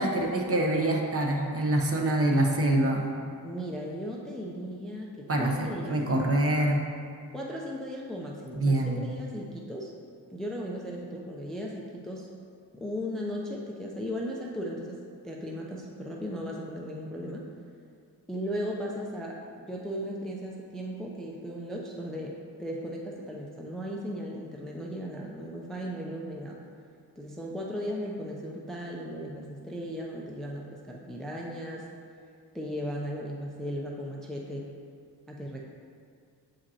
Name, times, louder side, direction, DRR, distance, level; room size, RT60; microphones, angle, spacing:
voice 1, 0.0-3.1 5.3-6.8 8.5-9.0, right 1 dB, 35° right, 0 dB, 0.8 m, -25 dB
voice 2, 3.4-6.0 7.3-9.9 10.3-12.3 12.7-15.0 15.2-17.5 18.3-26.6 27.2-31.9 32.5-34.7 35.3-35.6, equal, ahead, -2 dB, 0.4 m, -36 dB
7.3 x 5.1 x 2.8 m, 2.3 s
cardioid pair, 110°, 40 cm